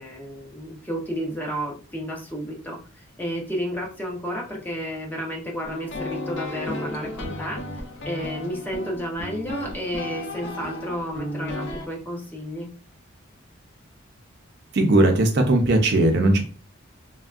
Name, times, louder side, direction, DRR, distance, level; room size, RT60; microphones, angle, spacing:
voice 1, 0.0-2.8 3.2-7.6 8.0-12.7, equal, 10° left, -1 dB, 0.5 m, -31 dB
sound 1, 5.6-11.9, left 1 dB, 60° left, 0.5 m, -34 dB
voice 2, 14.7-16.4, right 1 dB, 55° right, 4 dB, 0.5 m, -18 dB
3.4 x 2.1 x 2.3 m, 0.38 s
head